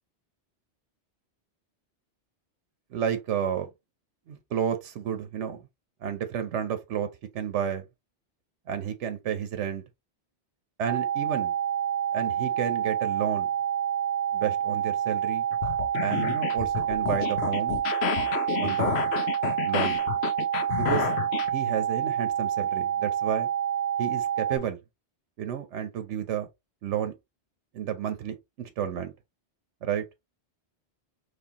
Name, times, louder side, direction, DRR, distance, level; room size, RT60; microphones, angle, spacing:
voice 1, 2.9-3.7 4.3-5.6 6.0-7.1 7.3-7.8 8.7-9.8 10.8-11.5 12.1-13.5 14.3-15.4 16.0-17.8 18.6-19.0 19.6-20.0 20.8-21.1 21.5-23.5 24.0-24.8 25.4-26.5 26.8-27.1 27.7-29.1 29.8-30.1, right 9 dB, 85° right, 1.0 m, -31 dB
sound 1, 10.9-24.6, right 9 dB, 60° right, 1.1 m, -28 dB
sound 2, 15.5-21.5, left 9 dB, 70° left, 0.8 m, -30 dB
4.3 x 3.2 x 2.8 m
omnidirectional pair, 1.2 m